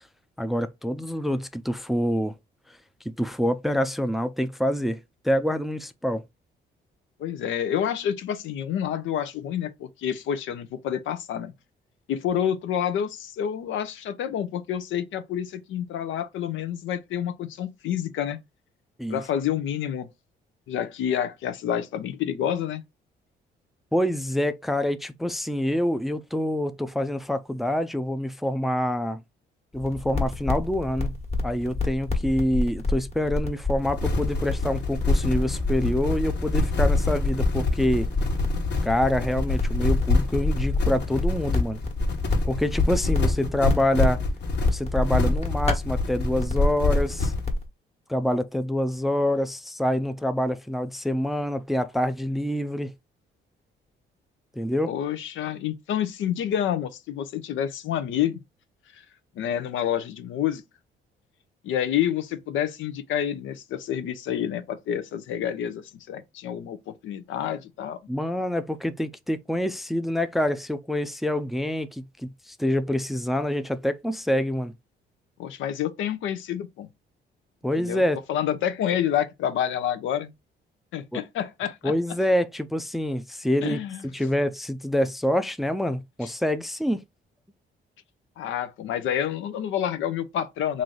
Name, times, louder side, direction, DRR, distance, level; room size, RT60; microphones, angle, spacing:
voice 1, 0.4-2.3 3.2-5.0 5.2-6.2 19.0-19.2 23.9-29.2 29.7-31.1 31.4-38.1 38.8-41.8 42.4-44.2 44.7-47.3 48.1-52.9 54.5-54.9 68.1-74.7 77.6-78.2 81.1-81.2 81.8-83.8 84.1-87.0, left 1 dB, ahead, 0.4 m, -26 dB
voice 2, 7.2-11.5 12.1-18.4 19.1-20.1 20.7-22.8 54.9-58.4 58.9-59.0 59.4-60.6 61.6-68.0 75.4-76.9 77.8-80.3 80.9-81.9 83.6-84.0 88.4-90.8, left 9 dB, 80° left, 0.6 m, -28 dB
sound 1, 29.7-47.6, left 2 dB, 30° left, 1.3 m, -29 dB
sound 2, 33.8-47.5, left 3 dB, 60° left, 1.2 m, -26 dB
3.1 x 2.6 x 3.9 m
cardioid pair, 90°, 20 cm